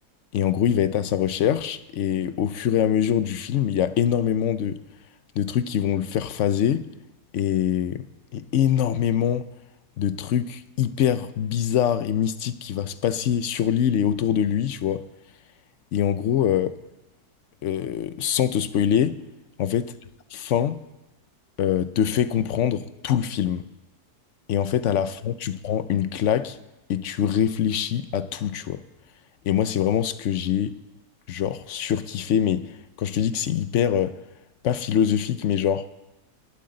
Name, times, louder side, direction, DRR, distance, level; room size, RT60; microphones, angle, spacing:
voice 1, 0.3-4.8 5.4-6.9 7.3-8.1 8.3-9.5 10.0-15.0 15.9-16.8 17.6-19.2 19.6-19.9 20.5-20.8 21.6-23.6 24.5-26.6 26.9-28.8 29.4-30.8 31.3-34.1 34.6-35.8, left 9 dB, 65° left, 0.8 m, -24 dB
22.0 x 11.5 x 3.9 m
omnidirectional pair, 1.7 m